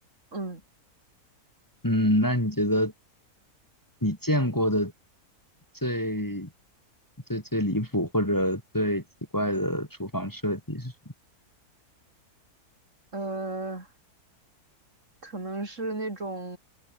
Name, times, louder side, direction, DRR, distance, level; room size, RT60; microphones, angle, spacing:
voice 1, 1.8-2.9 4.0-4.9 5.8-6.5 7.3-9.0 9.3-10.9, equal, 10° left, 3.2 m, -26 dB
voice 2, 13.1-13.9 15.2-16.6, right 2 dB, 50° right, 4.6 m, -33 dB
omnidirectional pair, 1.6 m